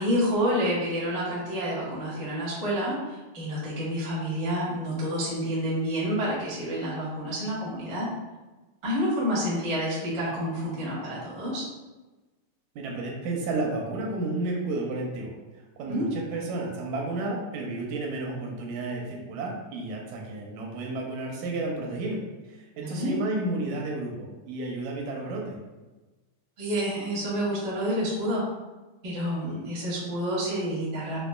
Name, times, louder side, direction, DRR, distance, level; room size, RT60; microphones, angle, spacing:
voice 1, 0.0-8.1 8.8-11.6 15.9-16.1 22.8-23.1 26.6-28.4 29.0-31.2, equal, 55° right, -8 dB, 0.7 m, -29 dB
voice 2, 12.8-25.6, right 2 dB, 80° right, -1 dB, 1.9 m, -32 dB
5.3 x 2.4 x 2.3 m, 1.2 s
omnidirectional pair, 3.4 m